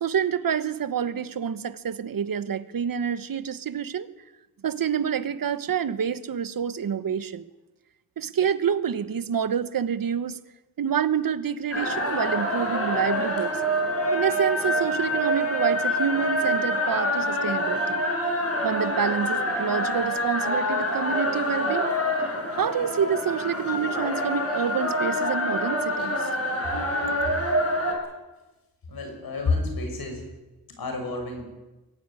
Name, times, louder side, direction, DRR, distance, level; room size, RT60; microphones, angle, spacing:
voice 1, 0.0-4.1 4.6-7.4 8.2-10.4 10.8-13.5 14.1-18.0 18.3-21.9 22.3-26.3, right 8 dB, 70° right, 13 dB, 1.2 m, -28 dB
sound 1, 11.7-27.9, equal, 40° left, 6.3 m, -26 dB
voice 2, 28.9-30.2 30.7-31.4, left 3 dB, 80° left, 4 dB, 6.1 m, -29 dB
22.5 x 15.0 x 9.9 m, 1.1 s
wide cardioid pair, 125°, 35 cm